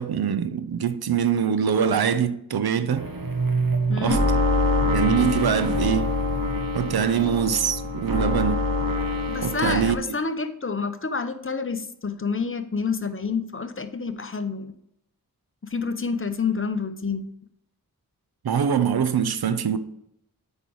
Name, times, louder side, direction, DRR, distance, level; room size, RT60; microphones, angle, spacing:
voice 1, 0.0-3.1 4.0-4.2 4.9-6.1 6.7-8.6 9.4-10.0 18.4-19.8, right 8 dB, 85° right, 0.6 m, -23 dB
sound 1, 2.9-10.0, left 1 dB, 65° right, 1.2 m, -25 dB
voice 2, 3.9-4.2 9.3-14.7 15.6-17.2, left 5 dB, 35° left, 0.8 m, -28 dB
8.3 x 5.3 x 4.6 m
wide cardioid pair, 55°, 36 cm